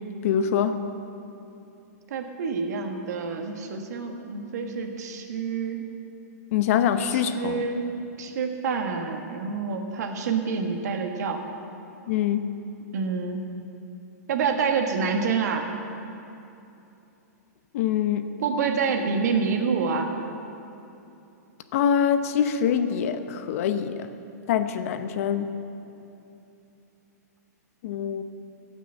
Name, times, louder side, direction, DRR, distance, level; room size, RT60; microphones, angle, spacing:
voice 1, 0.2-0.8 6.5-7.7 12.1-12.5 17.7-18.3 21.7-24.1 24.5-25.5 27.8-28.2, left 8 dB, 55° left, 10 dB, 0.8 m, -24 dB
voice 2, 2.1-5.8 7.1-7.9 8.2-11.4 12.9-13.5 14.3-15.7 18.4-20.1, right 5 dB, 70° right, 4 dB, 1.3 m, -27 dB
15.0 x 6.1 x 7.0 m, 2.8 s
hypercardioid pair, 145°, 9 cm